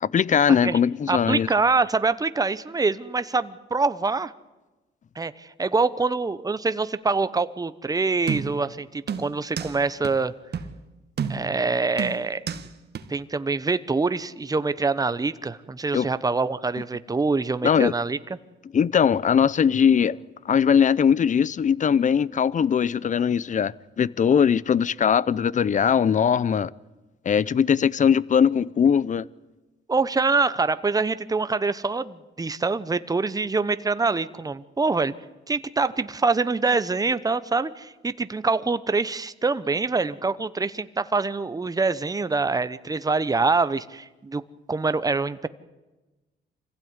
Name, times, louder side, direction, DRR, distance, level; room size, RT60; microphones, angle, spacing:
voice 1, 0.0-1.5 15.9-16.1 17.6-17.9 18.7-20.2 20.5-26.7 27.3-29.3, left 7 dB, 40° left, 0.7 m, -20 dB
voice 2, 1.1-4.3 5.2-10.3 11.3-12.4 13.1-18.2 29.9-35.1 35.5-44.4 44.7-45.5, right 4 dB, 20° right, 1.0 m, -25 dB
sound 1, 8.3-8.7 9.1-9.8 10.0-10.1 10.5-10.7 11.2-11.6 12.0-12.7 12.9-13.0, right 7 dB, 55° right, 1.7 m, -30 dB
25.5 x 16.0 x 9.7 m
cardioid pair, 90°, 20 cm